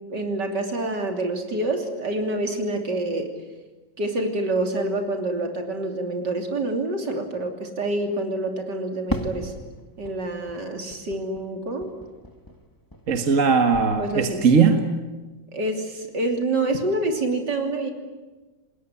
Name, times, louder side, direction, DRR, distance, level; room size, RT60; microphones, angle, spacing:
voice 1, 0.1-3.3 4.0-9.5 10.0-11.9 14.0-14.5 15.5-17.9, right 2 dB, 65° right, 4 dB, 3.7 m, -27 dB
Fireworks, 9.1-13.5 13.7-14.5, left 1 dB, 10° left, 1.7 m, -37 dB
voice 2, 13.1-14.8, right 5 dB, 45° right, 6 dB, 1.8 m, -19 dB
28.0 x 20.5 x 9.9 m, 1.2 s
omnidirectional pair, 2.0 m